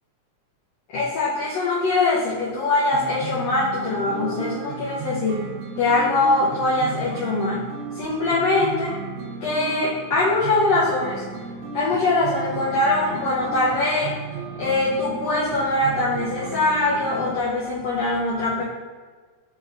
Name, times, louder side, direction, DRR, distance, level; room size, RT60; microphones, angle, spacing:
voice 1, 0.9-5.5 5.8-7.7 7.9-8.9 9.4-11.2 11.7-14.2 14.6-18.6, left 2 dB, 70° left, -8 dB, 1.8 m, -22 dB
sound 1, 2.9-17.3, right 5 dB, 75° right, 1.7 m, -34 dB
5.1 x 3.7 x 2.5 m, 1.5 s
omnidirectional pair, 3.5 m